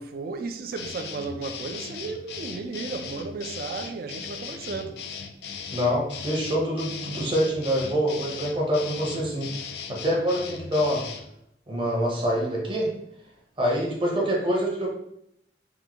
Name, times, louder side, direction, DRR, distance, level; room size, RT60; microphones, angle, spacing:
voice 1, 0.0-5.1, right 4 dB, 55° right, 0.3 m, -34 dB
sound 1, 0.8-11.3, left 6 dB, 65° left, 0.3 m, -38 dB
voice 2, 5.7-9.5 9.9-11.0 11.7-12.9 13.6-14.9, equal, 30° right, 0.8 m, -25 dB
3.6 x 2.2 x 2.9 m
head